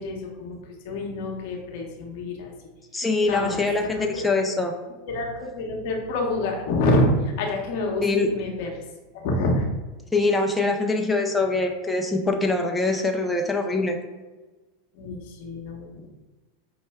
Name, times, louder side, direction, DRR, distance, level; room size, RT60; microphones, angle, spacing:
voice 1, 0.0-2.5 3.3-4.3 5.1-8.8 9.1-9.7 14.9-16.2, left 1 dB, 65° left, 0 dB, 0.8 m, -27 dB
voice 2, 2.9-4.7 8.0-8.3 10.1-14.0, left 3 dB, 10° left, 3 dB, 0.5 m, -23 dB
5.4 x 2.1 x 3.4 m, 1.2 s
hypercardioid pair, 100°, 0 cm